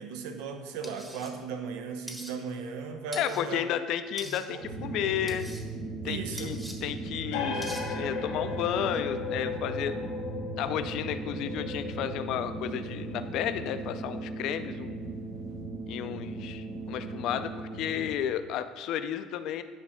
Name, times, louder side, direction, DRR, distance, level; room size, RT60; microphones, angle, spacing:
voice 1, 0.0-3.6 4.2-4.6 6.0-6.5, right 5 dB, 85° right, 6 dB, 0.8 m, -37 dB
sound 1, 0.8-1.3 2.1-2.3 3.1-3.4 4.2-4.4 5.3-5.6 6.4-6.8 7.6-7.8, equal, 5° right, 1.0 m, -42 dB
voice 2, 3.2-5.5 6.0-10.0 10.6-15.0 15.9-19.6, left 10 dB, 65° left, 10 dB, 0.4 m, -32 dB
sound 2, 4.6-18.2, right 3 dB, 55° right, 1.0 m, -38 dB
sound 3, 7.3-14.5, left 5 dB, 85° left, 1.3 m, -37 dB
9.5 x 3.3 x 6.3 m, 1.5 s
cardioid pair, 125°, 0 cm